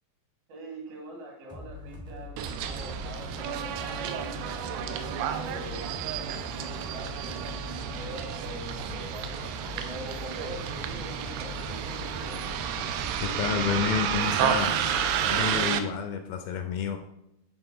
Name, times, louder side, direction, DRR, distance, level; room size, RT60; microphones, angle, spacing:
voice 1, 0.5-5.9 6.5-12.5, right 1 dB, 70° right, -1 dB, 3.9 m, -43 dB
sound 1, 1.5-15.6, left 2 dB, 15° right, 0.5 m, -42 dB
Bus, 2.4-15.8, right 9 dB, 90° right, 2.7 m, -31 dB
voice 2, 13.2-14.8 15.3-17.0, left 7 dB, 80° left, 6 dB, 2.3 m, -29 dB
9.1 x 3.8 x 4.9 m, 0.84 s
omnidirectional pair, 4.6 m